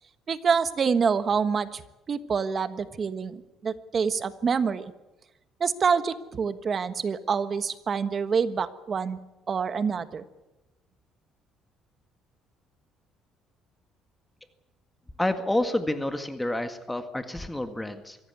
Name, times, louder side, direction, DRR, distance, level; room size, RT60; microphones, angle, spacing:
voice 1, 0.3-1.8 2.1-4.9 5.6-9.2 9.5-10.2, right 6 dB, 40° right, 11 dB, 1.3 m, -26 dB
voice 2, 15.2-18.2, left 1 dB, 10° left, 7 dB, 1.9 m, -29 dB
24.5 x 16.5 x 8.4 m, 1.0 s
cardioid pair, 100°, 0 cm